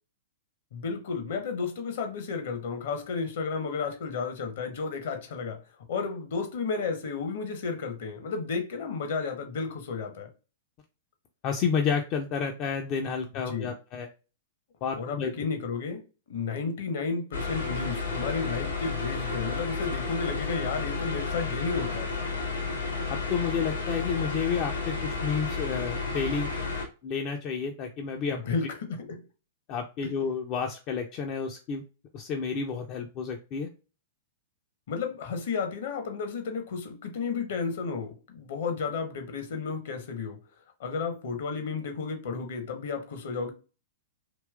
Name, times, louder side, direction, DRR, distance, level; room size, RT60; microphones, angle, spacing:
voice 1, 0.7-5.6 5.9-10.3 13.5-13.7 14.9-16.0 16.3-22.1 28.3-29.2 30.0-30.1 34.9-40.4 40.8-43.5, left 5 dB, 55° left, 0.8 m, -32 dB
voice 2, 11.4-14.1 14.8-15.4 23.3-26.5 27.0-28.4 29.7-31.8 32.1-33.7, left 6 dB, 40° left, 0.4 m, -30 dB
sound 1, 17.3-26.9, left 4 dB, 80° left, 1.0 m, -32 dB
3.1 x 2.9 x 2.3 m
figure-of-eight pair, 100°, 0 cm